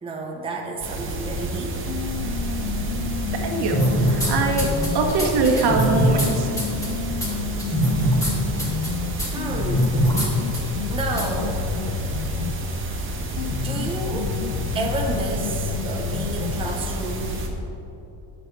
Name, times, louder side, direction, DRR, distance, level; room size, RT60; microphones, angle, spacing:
voice 1, 0.0-1.8 8.4-8.7 9.3-10.0 10.9-11.7 13.5-14.4 14.7-17.4, right 2 dB, 15° right, 0 dB, 0.9 m, -30 dB
sound 1, 0.8-17.5, right 1 dB, 30° right, 1.4 m, -29 dB
sound 2, 1.9-5.2 5.9-12.8 13.4-16.8, left 7 dB, 50° left, 0.7 m, -31 dB
voice 2, 3.4-4.7 4.9-6.5, right 3 dB, 65° right, 2 dB, 1.7 m, -22 dB
sound 3, 3.7-4.3 4.6-6.3 6.6-6.9 7.2-7.3 7.6-8.3 8.6-8.9 9.2-9.3 9.7-10.3 10.5-10.6 11.2-11.3, right 1 dB, 5° left, 2.3 m, -22 dB
19.5 x 7.8 x 3.4 m, 2.9 s
cardioid pair, 165°, 43 cm